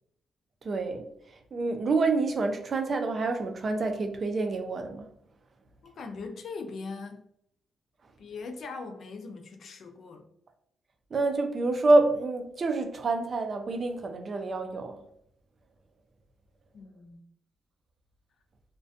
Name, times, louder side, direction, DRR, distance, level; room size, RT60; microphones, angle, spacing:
voice 1, 0.6-1.1 1.5-5.1 11.1-15.0, right 3 dB, 40° right, 0.3 m, -27 dB
voice 2, 5.8-7.3 8.2-10.3 16.7-17.2, left 4 dB, 55° left, 0.4 m, -40 dB
2.4 x 2.1 x 2.5 m
cardioid pair, 125°, 0 cm